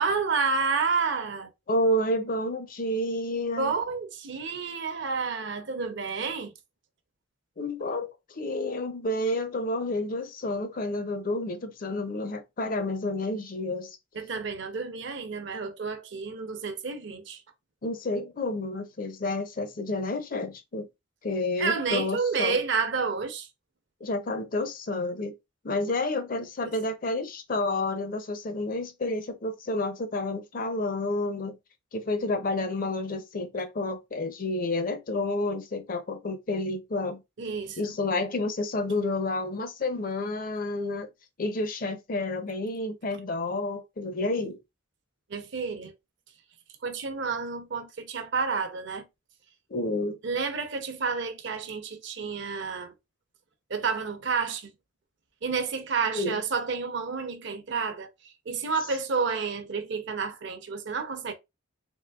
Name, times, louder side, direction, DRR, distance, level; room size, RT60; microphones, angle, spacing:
voice 1, 0.0-1.5 3.6-6.5 14.1-17.4 21.6-23.5 26.6-26.7 37.4-37.9 45.3-45.9 46.8-49.0 50.2-52.9 53.7-54.7 55.4-58.1 58.5-61.3, right 5 dB, 55° right, 0.6 m, -30 dB
voice 2, 1.7-3.7 7.6-14.0 17.8-20.9 21.2-22.6 24.0-25.3 25.6-31.6 31.9-37.2 37.8-41.1 41.4-44.6 49.7-50.2 56.1-56.4, left 2 dB, 45° left, 0.5 m, -30 dB
3.7 x 3.1 x 2.3 m
head